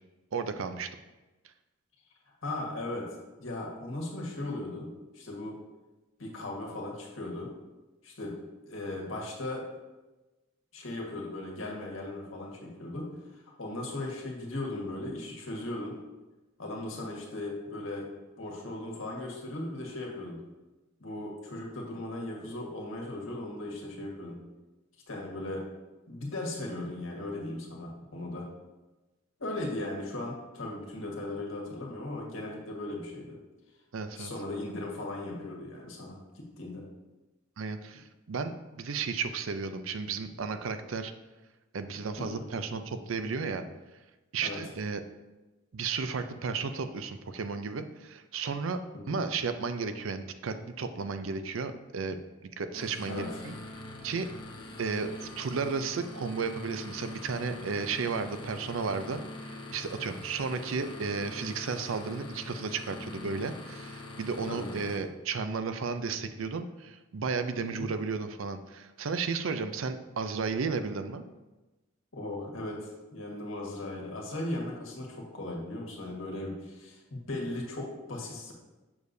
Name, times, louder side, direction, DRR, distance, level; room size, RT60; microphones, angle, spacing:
voice 1, 0.3-0.9 33.9-34.3 37.6-41.1 41.7-43.6 44.3-45.0 45.7-48.8 49.1-52.2 52.4-53.5 54.0-54.3 54.8-71.2, right 5 dB, 85° right, 9 dB, 0.5 m, -33 dB
voice 2, 2.4-3.1 3.4-4.9 5.1-5.6 6.2-7.5 8.0-8.3 8.7-9.7 10.7-16.0 16.6-18.1 18.4-20.4 21.0-24.4 25.1-25.6 26.1-28.5 29.4-33.4 34.2-36.9 42.2-42.4 44.4-44.6 48.9-49.2 53.1-53.3 64.5-64.8 67.6-67.9 72.1-78.5, left 2 dB, 85° left, -1 dB, 1.6 m, -37 dB
sound 1, 52.7-65.0, left 2 dB, 25° left, 0.8 m, -43 dB
7.1 x 6.5 x 2.7 m, 1.1 s
head